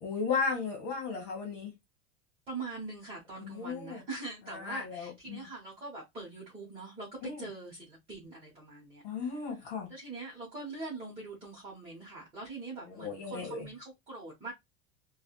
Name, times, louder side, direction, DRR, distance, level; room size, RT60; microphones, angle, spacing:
voice 1, 0.0-1.7 3.4-4.0 4.5-5.5 7.2-7.4 9.0-9.9 13.0-13.6, left 5 dB, 50° left, 1.4 m, -35 dB
voice 2, 2.5-9.6 9.9-14.5, right 3 dB, 15° right, 1.0 m, -43 dB
3.4 x 2.3 x 2.3 m
supercardioid pair, 165°, 33 cm